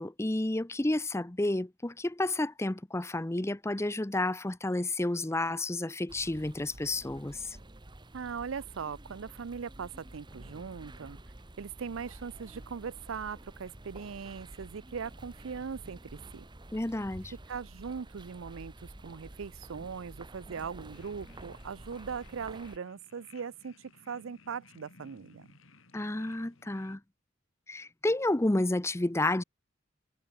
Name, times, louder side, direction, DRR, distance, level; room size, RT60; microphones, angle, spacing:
voice 1, 0.0-7.6 16.7-17.3 25.9-27.0 27.7-29.4, left 2 dB, 15° left, 0.7 m, -31 dB
sound 1, 6.1-22.8, right 1 dB, 25° right, 1.2 m, -50 dB
voice 2, 8.1-11.2 11.6-16.4 17.5-25.5, right 6 dB, 80° right, 0.5 m, -40 dB
sound 2, 20.9-27.0, left 3 dB, 85° left, 2.8 m, -59 dB
head